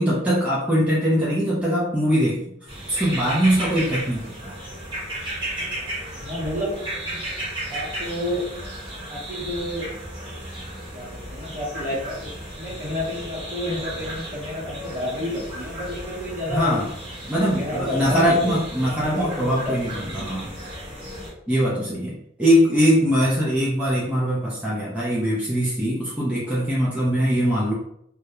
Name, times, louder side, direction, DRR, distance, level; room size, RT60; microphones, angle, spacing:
voice 1, 0.0-2.4 2.9-4.5 16.5-16.9 17.3-20.5 21.5-27.7, equal, 5° right, -6 dB, 0.4 m, -22 dB
sound 1, 2.7-21.3, right 1 dB, 25° right, 1.0 m, -34 dB
voice 2, 6.2-6.8 7.7-8.5 9.1-9.9 10.9-12.2 12.6-16.8 17.5-18.5 19.0-19.8 20.2-20.4 27.2-27.5, left 1 dB, 45° right, -5 dB, 1.0 m, -30 dB
2.3 x 2.0 x 2.8 m, 0.75 s
head